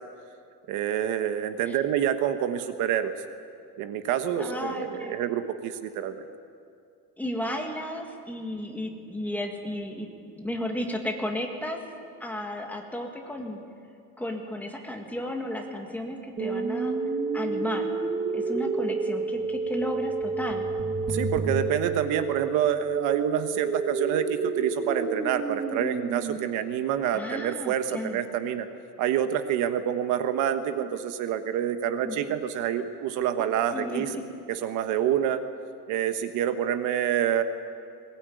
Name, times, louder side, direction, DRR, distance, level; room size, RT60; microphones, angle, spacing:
voice 1, 0.7-3.1 3.8-6.2 21.1-28.7 29.0-34.1 34.5-35.4 35.9-37.4, right 10 dB, 55° right, 9 dB, 1.3 m, -27 dB
voice 2, 4.4-5.1 7.2-10.1 10.3-11.8 12.2-13.6 14.2-16.9 17.3-17.9 18.3-20.6 27.1-28.2 32.0-32.2 33.4-34.2, left 1 dB, 5° left, 2 dB, 1.8 m, -33 dB
sound 1, 16.4-26.4, right 4 dB, 20° right, 1.4 m, -30 dB
21.0 x 20.5 x 9.3 m, 2.4 s
cardioid pair, 180°, 35 cm